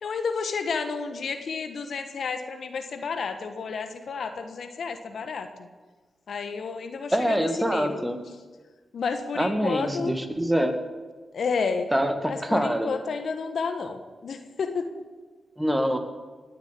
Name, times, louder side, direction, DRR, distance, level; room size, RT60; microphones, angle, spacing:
voice 1, 0.0-5.7 6.3-8.0 8.9-10.2 11.3-11.9 12.3-15.0, left 5 dB, 70° left, 7 dB, 1.4 m, -31 dB
voice 2, 7.1-8.2 9.4-10.7 11.9-12.9 15.6-16.0, equal, 10° right, 6 dB, 2.2 m, -25 dB
19.5 x 7.5 x 8.5 m, 1.3 s
supercardioid pair, 45°, 0 cm